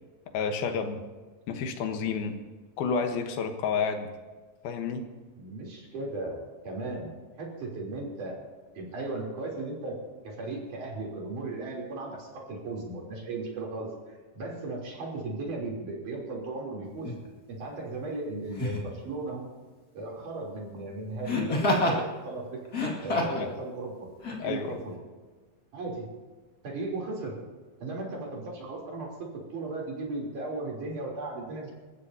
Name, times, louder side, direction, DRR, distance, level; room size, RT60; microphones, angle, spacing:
voice 1, 0.3-1.0 1.5-2.3 2.8-4.1 4.6-5.0 23.4-23.5 24.4-24.7, left 5 dB, 85° left, 5 dB, 3.1 m, -30 dB
voice 2, 5.4-7.1 7.4-8.4 8.7-10.0 10.2-17.1 17.5-19.4 19.9-22.6 23.0-24.9 25.7-26.1 26.6-27.4 27.8-31.7, right 2 dB, 60° right, -2 dB, 4.9 m, -36 dB
Laughter, 17.0-17.2 18.5-18.9 21.3-22.0 22.7-23.5 24.2-24.4, left 2 dB, 30° left, 2.1 m, -27 dB
28.0 x 14.5 x 2.8 m, 1.4 s
omnidirectional pair, 4.2 m